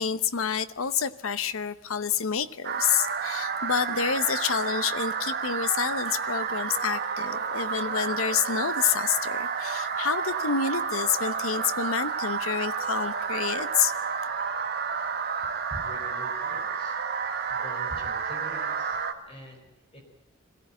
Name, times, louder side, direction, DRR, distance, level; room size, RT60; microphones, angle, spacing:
voice 1, 0.0-13.9, left 7 dB, 85° left, 14 dB, 1.0 m, -28 dB
sound 1, 2.6-19.1, right 6 dB, 50° right, 1.8 m, -30 dB
voice 2, 15.4-20.0, left 1 dB, 30° left, 2 dB, 4.8 m, -45 dB
22.0 x 16.0 x 9.0 m, 0.91 s
head